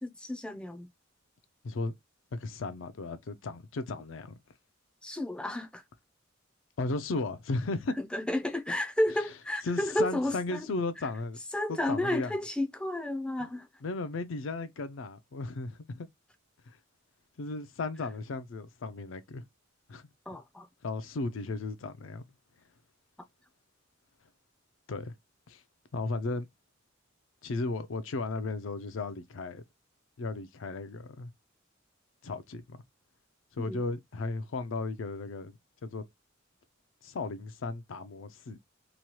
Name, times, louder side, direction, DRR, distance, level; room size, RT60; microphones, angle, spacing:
voice 1, 0.0-0.9 5.0-5.8 8.0-10.7 11.5-13.7 20.3-20.7 33.6-33.8, left 1 dB, 5° left, 0.4 m, -32 dB
voice 2, 1.6-1.9 2.3-4.4 6.8-7.9 9.6-11.4 11.7-12.4 13.4-13.5 13.8-16.1 16.7-16.8 17.4-19.4 19.9-20.1 20.8-22.3 24.9-25.1 25.5-25.6 25.9-26.5 27.4-29.6 30.2-31.3 32.2-32.8 33.5-35.5 35.8-36.0 37.0-38.6, left 3 dB, 70° left, 0.5 m, -35 dB
2.9 x 2.3 x 2.9 m
head